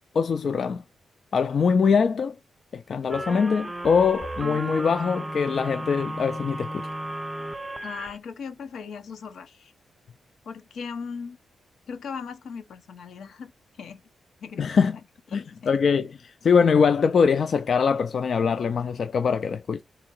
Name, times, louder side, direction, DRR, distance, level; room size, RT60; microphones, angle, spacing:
voice 1, 0.1-0.8 1.3-2.4 2.7-6.9 14.6-15.0 15.3-19.8, left 6 dB, 50° left, 0.3 m, -23 dB
sound 1, 3.1-8.2, right 1 dB, 10° right, 0.5 m, -34 dB
voice 2, 7.8-9.7 10.4-11.4 11.9-13.5 13.8-14.0 14.4-14.7 14.9-15.0 15.3-15.8, left 6 dB, 80° left, 0.9 m, -38 dB
3.7 x 2.8 x 4.4 m
wide cardioid pair, 140°, 0 cm